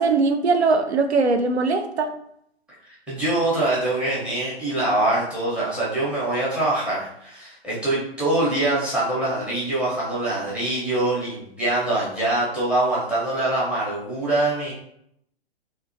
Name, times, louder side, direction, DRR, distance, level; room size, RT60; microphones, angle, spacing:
voice 1, 0.0-2.1, right 3 dB, 85° right, 6 dB, 0.5 m, -20 dB
voice 2, 3.1-14.7, right 2 dB, 5° right, -7 dB, 0.7 m, -24 dB
2.8 x 2.3 x 2.5 m, 0.75 s
figure-of-eight pair, 120°, 32 cm